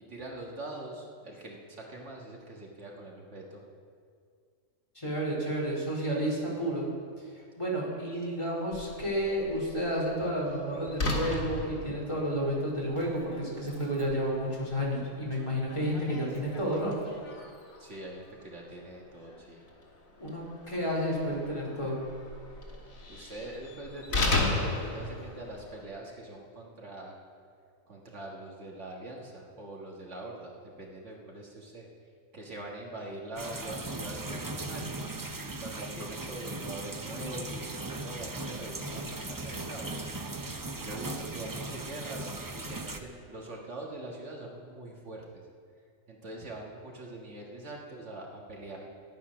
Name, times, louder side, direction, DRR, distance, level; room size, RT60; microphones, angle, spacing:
voice 1, 0.1-3.6 17.8-19.6 23.1-27.2 27.9-31.9 32.3-35.1 35.6-40.0 40.8-45.4 46.1-48.9, right 2 dB, 60° right, -1 dB, 1.8 m, -43 dB
voice 2, 4.9-6.9 7.6-17.0 20.2-22.0, equal, 20° left, -4 dB, 2.7 m, -31 dB
Slam, 8.7-25.9, left 2 dB, 85° left, 2.1 m, -37 dB
sound 1, 33.4-43.0, right 2 dB, 25° right, 0.4 m, -38 dB
13.5 x 9.7 x 6.1 m, 2.2 s
omnidirectional pair, 1.4 m